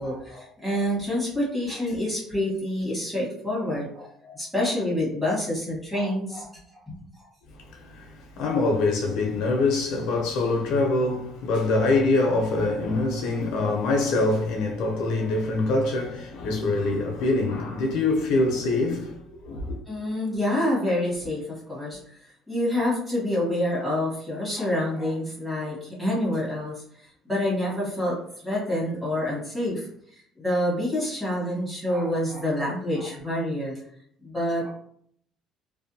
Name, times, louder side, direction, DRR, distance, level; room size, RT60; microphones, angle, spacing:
voice 1, 0.0-6.5 6.9-7.3 19.9-22.0 22.5-26.8 27.2-28.2 28.4-29.9 30.1-33.7 34.2-34.7, left 1 dB, 5° right, 1.2 m, -27 dB
voice 2, 7.7-19.8, left 2 dB, 75° left, 0.5 m, -24 dB
2.5 x 2.1 x 2.6 m
cardioid pair, 120°, 0 cm